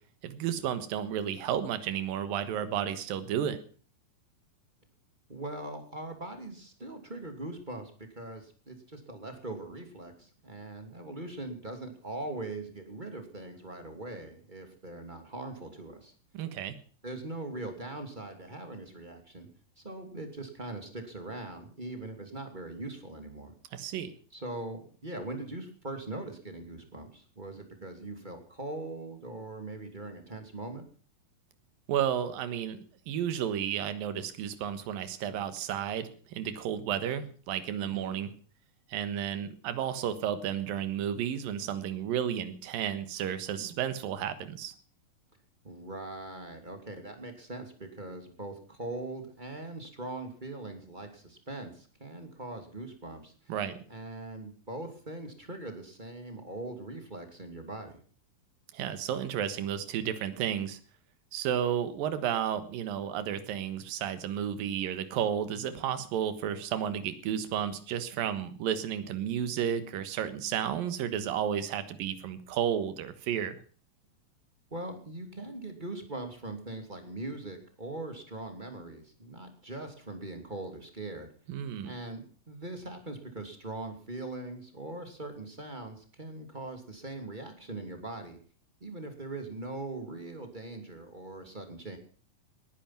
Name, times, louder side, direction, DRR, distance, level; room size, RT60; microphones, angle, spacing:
voice 1, 0.2-3.6 16.3-16.8 23.7-24.1 31.9-38.3 38.9-44.7 53.5-53.8 58.7-60.8 61.3-73.6 81.5-81.9, right 9 dB, 80° right, 12 dB, 3.2 m, -32 dB
voice 2, 5.3-16.1 17.0-19.5 19.8-23.5 24.3-30.8 37.9-38.3 45.6-53.3 53.9-58.0 74.7-81.3 81.8-88.4 88.8-92.0, right 2 dB, 15° right, 5 dB, 2.4 m, -41 dB
19.5 x 10.5 x 5.9 m, 0.42 s
omnidirectional pair, 4.0 m